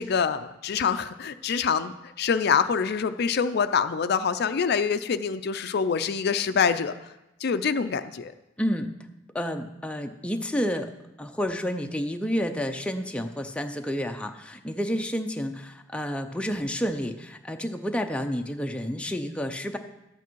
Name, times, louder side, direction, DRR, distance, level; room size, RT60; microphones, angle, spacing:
voice 1, 0.0-6.9 7.4-8.3, left 6 dB, 55° left, 11 dB, 0.4 m, -25 dB
voice 2, 8.6-8.9 9.3-10.9 11.2-19.8, equal, 5° left, 5 dB, 0.6 m, -30 dB
12.0 x 8.3 x 4.6 m, 0.94 s
head